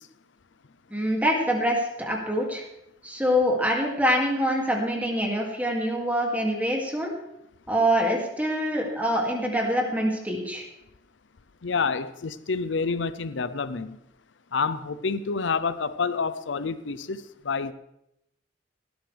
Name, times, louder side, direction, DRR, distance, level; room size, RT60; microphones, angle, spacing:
voice 1, 0.9-2.6 3.0-7.1 7.7-10.6, equal, 10° right, 0 dB, 2.4 m, -25 dB
voice 2, 11.6-14.0 14.5-17.7, left 5 dB, 75° left, 14 dB, 0.7 m, -28 dB
18.0 x 12.5 x 3.4 m, 0.82 s
head